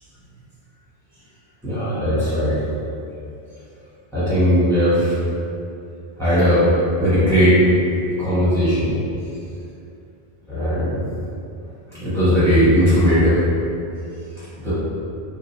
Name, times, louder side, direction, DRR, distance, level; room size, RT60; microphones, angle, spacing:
voice 1, 1.6-2.6 4.1-5.2 6.2-6.7 7.0-9.0 10.5-11.0 11.9-13.5 14.6-14.7, equal, ahead, -14 dB, 1.2 m, -18 dB
2.5 x 2.2 x 3.1 m, 2.6 s
omnidirectional pair, 1.1 m